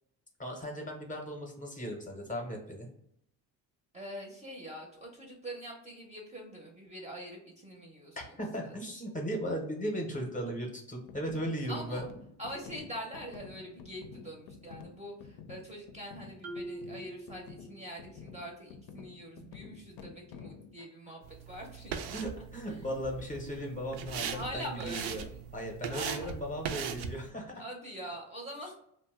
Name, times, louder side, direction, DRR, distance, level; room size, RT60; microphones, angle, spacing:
voice 1, 0.4-2.9 8.2-12.0 22.1-25.3 25.5-27.5, equal, 20° left, 0 dB, 0.7 m, -37 dB
voice 2, 3.9-8.4 8.6-8.7 11.7-12.1 12.4-22.1 22.7-23.0 24.3-25.4 25.9-26.3 27.5-28.7, equal, 15° right, -1 dB, 0.6 m, -44 dB
sound 1, 11.1-20.7, left 5 dB, 65° left, 0.5 m, -50 dB
Marimba xylophone, 16.4-18.2, right 1 dB, 85° right, 0.9 m, -44 dB
sound 2, 21.2-27.3, right 7 dB, 70° right, 0.5 m, -40 dB
2.6 x 2.1 x 3.4 m, 0.73 s
cardioid pair, 100°, 40 cm